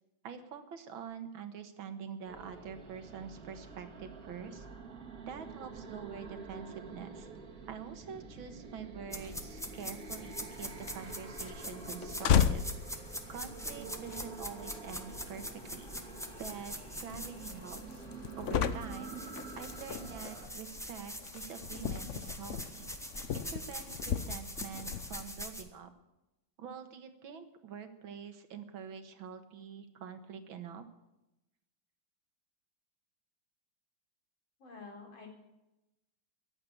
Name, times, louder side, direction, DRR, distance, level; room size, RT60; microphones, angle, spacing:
voice 1, 0.2-4.7 5.3-7.3 7.7-12.6 13.3-15.9 16.4-18.0 18.4-19.2 19.6-22.9 23.3-25.9 26.6-30.8, right 7 dB, 85° right, 8 dB, 2.2 m, -46 dB
sound 1, 2.3-20.5, right 4 dB, 45° right, 2.5 m, -48 dB
sound 2, 9.1-18.2 18.5-25.6, equal, ahead, 1.1 m, -44 dB
sound 3, 10.6-25.3, left 8 dB, 60° left, 0.7 m, -37 dB
voice 2, 34.6-35.3, left 4 dB, 80° left, 1 dB, 4.7 m, -48 dB
14.5 x 10.5 x 8.5 m, 0.94 s
omnidirectional pair, 2.2 m